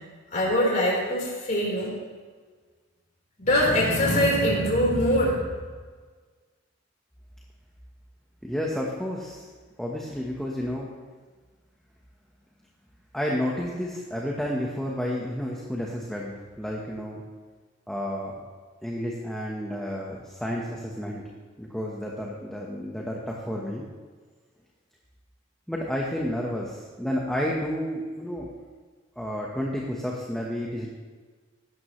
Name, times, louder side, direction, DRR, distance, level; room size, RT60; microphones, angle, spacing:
voice 1, 0.3-1.9 3.4-5.4, equal, 40° left, -4 dB, 4.2 m, -23 dB
voice 2, 8.4-9.5 9.8-10.9 13.1-17.2 17.9-18.3 18.8-21.2 21.6-23.8 25.7-28.5 29.2-30.9, equal, 5° left, -2 dB, 1.2 m, -31 dB
16.5 x 12.5 x 3.2 m, 1.5 s
head